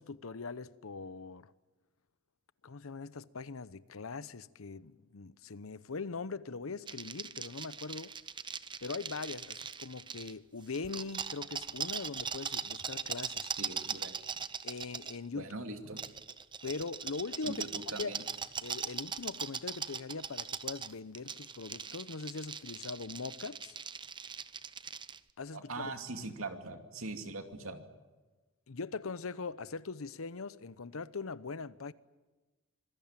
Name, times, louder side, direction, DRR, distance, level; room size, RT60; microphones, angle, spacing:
voice 1, 0.0-1.5 2.6-8.1 8.8-13.5 14.6-15.5 16.6-18.1 18.6-23.8 25.4-25.9 28.7-31.9, left 4 dB, 90° left, 0.8 m, -41 dB
sound 1, 6.9-10.3 10.7-15.2 16.0-25.2, right 6 dB, 25° right, 0.7 m, -40 dB
voice 2, 13.6-14.2 15.3-16.0 17.4-18.2 25.5-27.8, right 2 dB, 80° right, 2.6 m, -41 dB
26.0 x 20.0 x 9.0 m
head